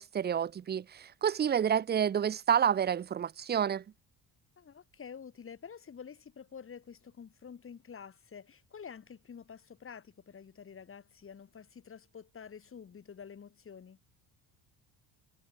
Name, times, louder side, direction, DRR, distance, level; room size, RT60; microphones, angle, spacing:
voice 1, 0.0-3.8, right 8 dB, 25° right, 0.6 m, -29 dB
voice 2, 4.6-14.0, left 7 dB, 30° left, 2.4 m, -49 dB
cardioid pair, 120°, 41 cm